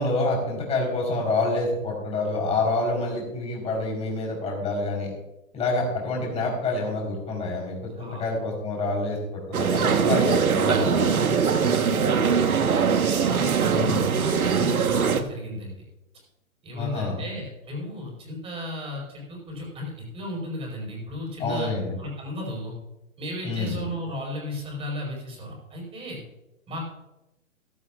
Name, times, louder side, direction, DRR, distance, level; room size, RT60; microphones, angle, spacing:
voice 1, 0.0-5.1 5.5-11.0 13.7-14.0 16.8-17.2 21.4-21.9 23.4-23.8, left 2 dB, 15° left, -2 dB, 3.9 m, -27 dB
sound 1, 9.5-15.2, right 6 dB, 85° right, 1.3 m, -22 dB
voice 2, 11.0-12.8 13.1-15.8 16.6-21.7 22.0-22.7 23.2-26.2 26.7-26.8, left 1 dB, 15° right, -2 dB, 4.7 m, -35 dB
15.0 x 15.0 x 2.4 m, 0.96 s
hypercardioid pair, 140°, 42 cm